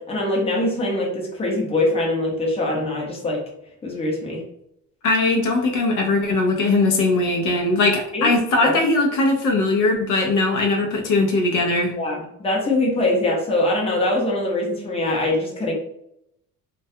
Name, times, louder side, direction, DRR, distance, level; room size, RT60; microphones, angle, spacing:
voice 1, 0.1-3.4 3.8-4.4 8.1-8.3 8.6-8.8 12.0-15.7, left 2 dB, 15° left, -2 dB, 0.7 m, -23 dB
voice 2, 5.0-11.9, left 2 dB, 60° left, 2 dB, 0.5 m, -20 dB
2.2 x 2.1 x 2.6 m, 0.77 s
cardioid pair, 125°, 35 cm